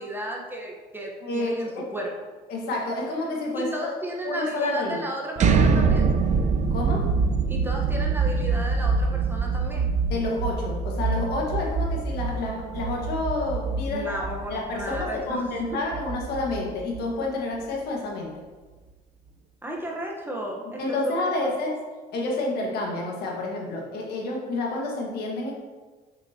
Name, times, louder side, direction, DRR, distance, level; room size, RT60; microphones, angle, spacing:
voice 1, 0.0-2.1 3.5-6.1 7.5-9.9 13.8-15.4 15.7-15.8 19.6-21.5, right 1 dB, 10° right, -1 dB, 1.1 m, -34 dB
voice 2, 1.2-1.9 2.5-3.9 4.2-5.0 6.7-7.1 10.1-14.1 14.5-18.4 20.8-21.8 22.1-25.5, left 2 dB, 75° left, -1 dB, 1.6 m, -29 dB
sound 1, 5.4-17.2, right 4 dB, 45° right, 0.6 m, -25 dB
6.6 x 5.8 x 2.9 m, 1.3 s
cardioid pair, 110°, 17 cm